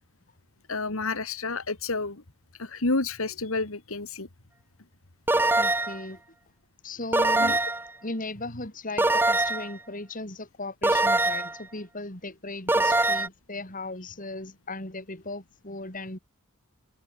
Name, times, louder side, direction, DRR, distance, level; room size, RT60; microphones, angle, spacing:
voice 1, 0.7-2.2 2.6-4.3 7.4-7.5, left 3 dB, 70° left, 2.0 m, -30 dB
sound 1, 5.3-6.0 7.1-7.9 9.0-9.7 10.8-11.6 12.7-13.3, right 2 dB, 10° right, 0.8 m, -23 dB
voice 2, 5.6-6.2 6.8-7.6 8.0-16.2, left 2 dB, 40° left, 4.5 m, -37 dB
open air
head